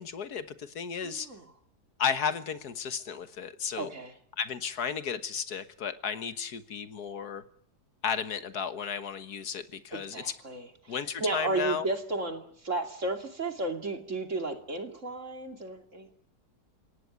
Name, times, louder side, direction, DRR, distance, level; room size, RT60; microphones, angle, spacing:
voice 1, 0.0-1.3 2.0-3.9 4.4-7.4 8.0-10.3 10.9-11.9, left 7 dB, 80° left, 11 dB, 1.9 m, -33 dB
voice 2, 1.0-1.5 3.8-4.2 9.9-16.1, right 2 dB, 50° right, 5 dB, 3.1 m, -34 dB
29.5 x 17.5 x 9.4 m, 0.67 s
omnidirectional pair, 1.7 m